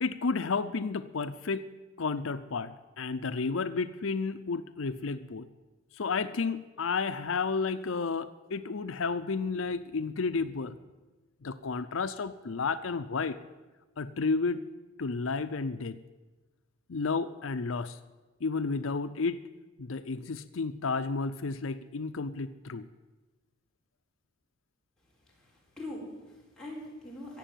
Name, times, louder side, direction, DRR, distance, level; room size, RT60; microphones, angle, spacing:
voice 1, 0.0-1.6 2.0-5.5 5.9-10.8 11.4-13.4 14.0-14.6 15.0-16.0 16.9-18.0 18.4-19.4 19.8-22.9, left 4 dB, 80° left, 11 dB, 0.6 m, -32 dB
voice 2, 25.4-27.4, left 1 dB, 5° left, -4 dB, 4.1 m, -43 dB
16.0 x 7.5 x 9.2 m, 1.2 s
head